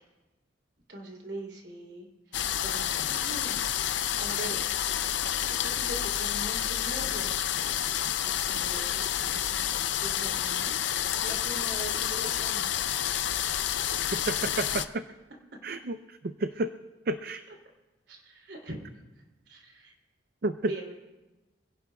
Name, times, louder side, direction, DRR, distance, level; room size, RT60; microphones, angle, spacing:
voice 1, 0.9-4.6 5.5-7.5 8.2-10.8 11.1-12.7 15.5-15.6 18.1-18.8 19.5-19.9 20.7-20.9, right 1 dB, 70° right, 1 dB, 3.0 m, -42 dB
sound 1, 2.3-14.9, left 10 dB, 75° left, 0.5 m, -29 dB
voice 2, 14.2-15.0 15.6-16.0 16.4-16.7 17.1-17.4 20.4-20.5, right 2 dB, 50° right, 10 dB, 0.4 m, -30 dB
26.5 x 17.0 x 2.3 m, 1.1 s
head